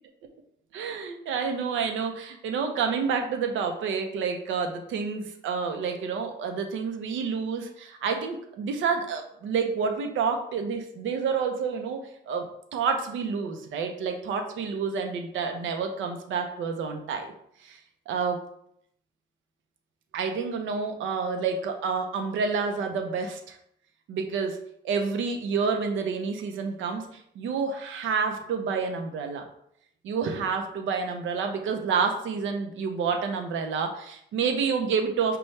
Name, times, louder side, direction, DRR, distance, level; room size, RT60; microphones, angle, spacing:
voice 1, 0.7-17.3 17.6-17.8 18.1-18.4 20.1-23.6 24.1-24.6 24.8-29.5 30.0-35.4, right 5 dB, 80° right, 5 dB, 0.6 m, -29 dB
5.4 x 2.3 x 3.2 m, 0.71 s
cardioid pair, 90°, 20 cm